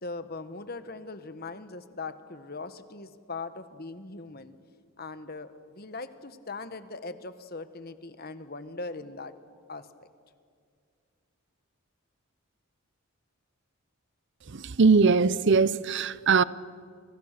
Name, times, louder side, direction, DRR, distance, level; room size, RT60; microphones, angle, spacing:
voice 1, 0.0-4.6 5.0-9.3 9.7-9.9, left 3 dB, 45° left, 1.3 m, -40 dB
voice 2, 14.5-16.4, right 4 dB, 55° right, 0.7 m, -21 dB
30.0 x 25.5 x 6.7 m
head